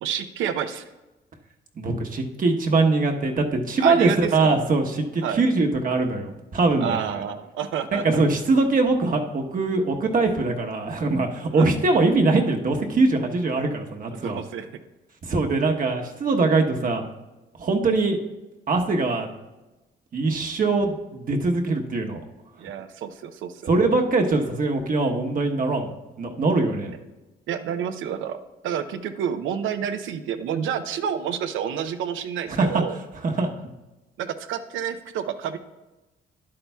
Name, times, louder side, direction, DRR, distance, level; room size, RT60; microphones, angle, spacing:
voice 1, 0.0-0.8 3.8-4.6 5.2-5.4 6.8-8.0 11.5-11.7 14.1-14.7 22.6-23.7 26.9-27.0 27.5-28.4 28.6-33.0 34.2-35.6, right 8 dB, 80° right, 9 dB, 0.6 m, -29 dB
voice 2, 1.8-7.0 7.9-14.4 15.2-17.1 17.6-18.2 18.7-19.3 20.1-22.2 23.7-26.9 32.5-32.7 33.2-33.5, right 3 dB, 45° right, 2 dB, 1.0 m, -22 dB
10.5 x 8.6 x 2.3 m, 1.1 s
cardioid pair, 90°, 20 cm